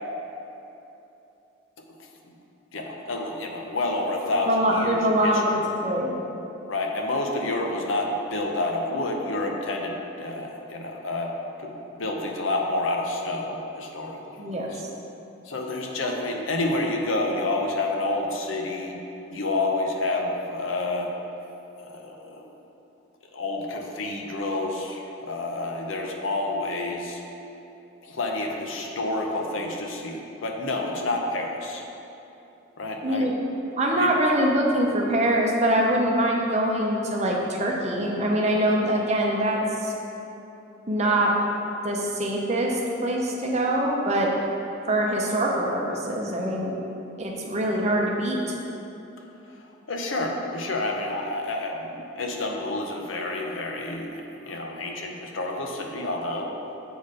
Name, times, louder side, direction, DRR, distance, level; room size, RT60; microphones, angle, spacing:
voice 1, 2.7-5.4 6.7-11.3 11.6-14.8 15.4-19.0 19.3-21.1 21.8-22.4 23.3-27.2 28.0-31.8 32.8-33.3 34.0-34.1 49.6-56.6, left 2 dB, 80° left, 2 dB, 0.8 m, -29 dB
voice 2, 4.5-6.2 14.4-14.9 33.0-33.3 33.8-39.9 40.9-41.3 41.8-44.3 44.9-46.8 47.2-48.4, right 1 dB, 35° right, -1 dB, 0.8 m, -24 dB
7.0 x 4.2 x 4.9 m, 2.9 s
head